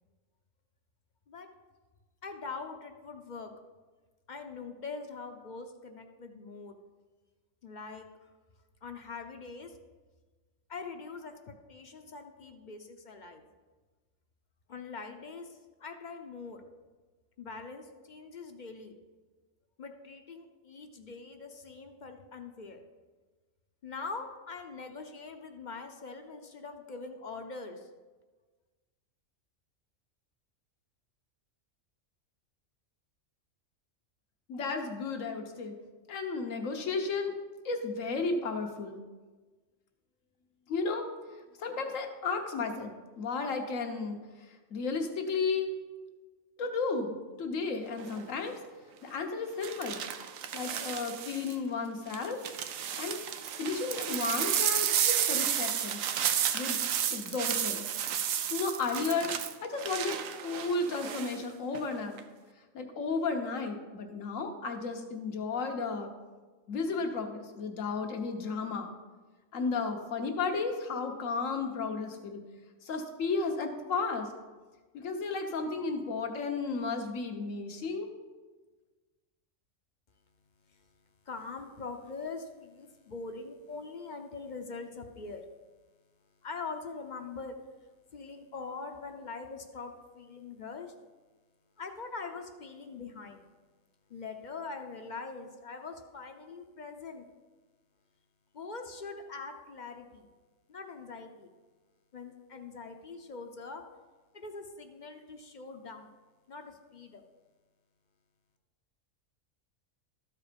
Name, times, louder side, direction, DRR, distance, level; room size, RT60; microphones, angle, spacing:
voice 1, 2.2-3.5 4.3-6.8 7.6-8.3 8.8-9.8 10.7-13.4 14.7-16.6 17.4-18.9 19.8-22.8 23.8-27.9 80.7-80.9 81.3-85.5 86.4-87.6 88.1-90.9 91.8-93.4 94.1-97.3 98.5-100.3 100.7-101.5 102.1-103.8 104.3-106.1 106.5-107.2, left 4 dB, 45° left, 6 dB, 0.7 m, -43 dB
voice 2, 34.5-35.7 36.1-37.3 37.6-39.0 40.7-41.1 41.6-44.2 44.5-45.7 46.6-48.6 49.0-50.0 50.5-52.4 53.0-53.2 53.6-56.0 56.5-56.8 57.1-57.8 58.5-59.3 59.6-62.2 62.7-66.1 66.7-68.9 69.5-72.4 72.8-74.3 74.9-78.1, left 4 dB, 80° left, 5 dB, 1.4 m, -33 dB
sound 1, 48.0-48.3 49.6-51.5 52.1-61.4 61.7-62.2, right 9 dB, 85° right, 1.0 m, -32 dB
13.0 x 4.8 x 5.1 m, 1.3 s
omnidirectional pair, 1.3 m